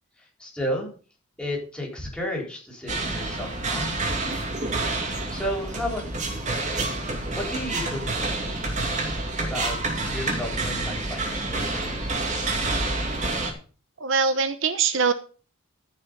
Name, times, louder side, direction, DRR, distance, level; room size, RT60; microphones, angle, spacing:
voice 1, 0.4-0.9 1.4-4.2 5.3-6.5 7.3-8.7 9.4-9.8 10.1-12.1, equal, 5° left, -2 dB, 4.0 m, -33 dB
sound 1, 2.9-13.5, right 2 dB, 35° right, 2.4 m, -28 dB
voice 2, 14.0-15.1, right 5 dB, 60° right, 10 dB, 0.9 m, -22 dB
14.0 x 6.2 x 5.4 m, 0.38 s
head